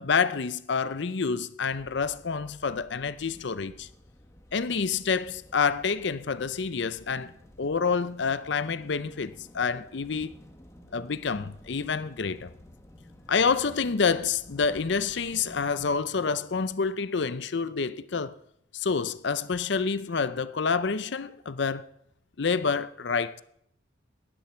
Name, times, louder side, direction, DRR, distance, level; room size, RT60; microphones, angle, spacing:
voice 1, 0.0-3.9 4.5-7.3 7.6-10.4 10.9-12.5 13.3-18.4 18.7-21.9 22.4-23.4, left 5 dB, 60° left, 0.6 m, -28 dB
sound 1, 1.7-16.0, left 1 dB, 15° left, 1.3 m, -52 dB
18.0 x 12.5 x 4.4 m
head